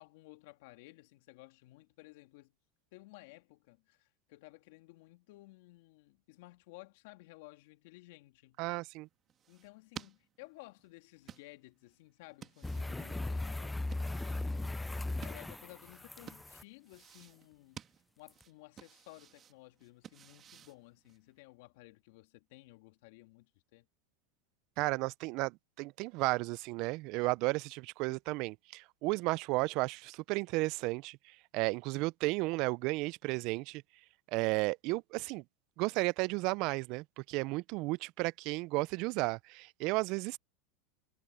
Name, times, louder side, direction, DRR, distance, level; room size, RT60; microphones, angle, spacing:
voice 1, 0.0-2.5 2.9-8.6 9.5-17.8 18.2-23.9, left 21 dB, 70° left, 2.7 m, -56 dB
voice 2, 8.6-9.1 24.8-33.8 34.3-35.4 35.8-40.4, right 24 dB, 55° right, 0.5 m, -33 dB
sound 1, 9.0-21.4, right 9 dB, 35° right, 2.4 m, -55 dB
sound 2, 12.6-16.6 18.3-18.4, left 2 dB, 5° left, 0.3 m, -38 dB
hypercardioid pair, 110°, 0 cm